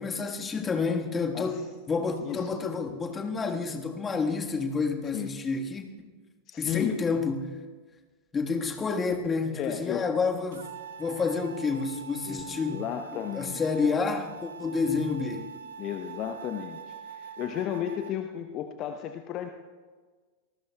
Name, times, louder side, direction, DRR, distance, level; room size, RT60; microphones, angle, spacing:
voice 1, 0.0-1.6 1.9-6.1 6.6-7.5 8.3-10.7 11.0-12.8 13.3-15.5, left 4 dB, 20° left, 4 dB, 1.5 m, -29 dB
voice 2, 5.1-5.5 6.5-7.0 9.5-10.0 12.3-13.9 15.8-19.5, left 10 dB, 35° left, 6 dB, 0.8 m, -34 dB
sound 1, 10.5-18.1, right 6 dB, 60° right, 0.7 m, -43 dB
26.5 x 19.0 x 2.3 m, 1.4 s
figure-of-eight pair, 90°, 0 cm